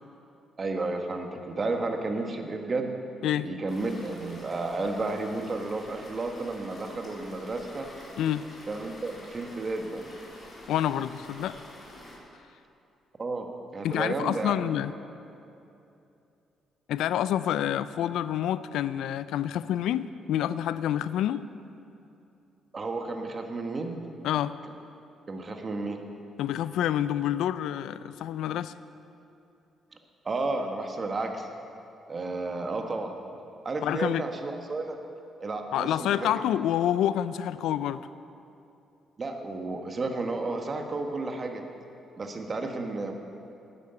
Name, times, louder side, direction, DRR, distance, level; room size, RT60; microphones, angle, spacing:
voice 1, 0.6-2.9 3.4-7.9 8.7-10.0 13.2-14.8 22.7-24.0 25.3-26.0 30.2-31.5 32.1-33.2 33.6-35.0 35.4-36.3 39.2-41.6 42.2-43.1, right 3 dB, 35° right, 4 dB, 1.4 m, -32 dB
sound 1, 3.7-12.2, left 1 dB, 35° left, 3.9 m, -47 dB
voice 2, 10.7-11.6 13.8-14.9 16.9-21.4 24.2-24.5 26.4-28.7 33.8-34.2 35.7-38.1, left 11 dB, 85° left, 15 dB, 0.4 m, -28 dB
11.5 x 9.9 x 7.0 m, 2.7 s
cardioid pair, 90°, 0 cm